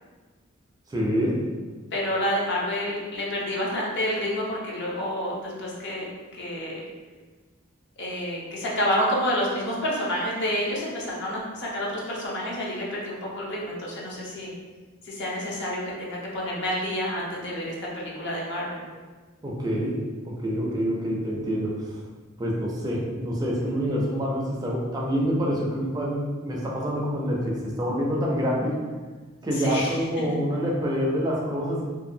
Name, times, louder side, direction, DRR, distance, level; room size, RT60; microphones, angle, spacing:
voice 1, 0.9-1.4 19.4-20.0 20.2-22.0 22.4-28.8 29.4-31.8, equal, 20° right, -3 dB, 0.4 m, -26 dB
voice 2, 1.9-6.1 6.3-6.8 8.0-14.5 15.0-18.8 29.5-30.0, equal, 60° left, -4 dB, 0.7 m, -29 dB
2.6 x 2.3 x 2.6 m, 1.4 s
head